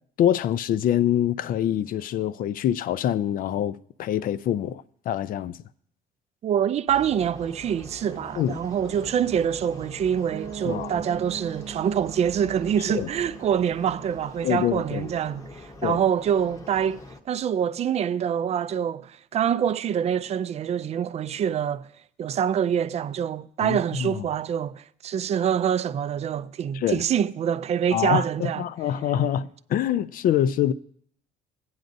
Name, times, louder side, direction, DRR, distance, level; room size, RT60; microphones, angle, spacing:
voice 1, 0.2-5.6 8.4-8.6 10.7-10.9 12.9-13.1 14.4-15.1 15.8-16.0 23.6-24.2 26.7-27.0 27.9-30.7, left 10 dB, 55° left, 0.4 m, -25 dB
voice 2, 6.4-17.0 17.3-21.9 22.2-28.6, right 8 dB, 40° right, 0.4 m, -25 dB
sound 1, 6.9-17.2, left 2 dB, 20° left, 0.8 m, -44 dB
Piano, 10.3-16.0, right 7 dB, 60° right, 0.7 m, -42 dB
16.5 x 9.4 x 2.6 m
cardioid pair, 110°, 17 cm